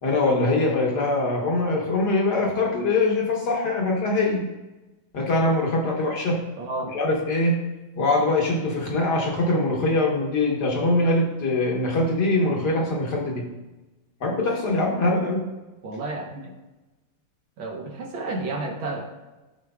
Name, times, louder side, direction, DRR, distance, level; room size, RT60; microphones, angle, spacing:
voice 1, 0.0-4.4 5.1-6.4 6.9-7.6 7.9-13.4 14.2-15.4, left 2 dB, 55° left, -1 dB, 1.6 m, -23 dB
voice 2, 6.5-7.0 15.8-16.5 17.6-19.0, right 2 dB, 70° right, 1 dB, 1.9 m, -31 dB
13.5 x 4.5 x 2.3 m, 1.1 s
omnidirectional pair, 2.3 m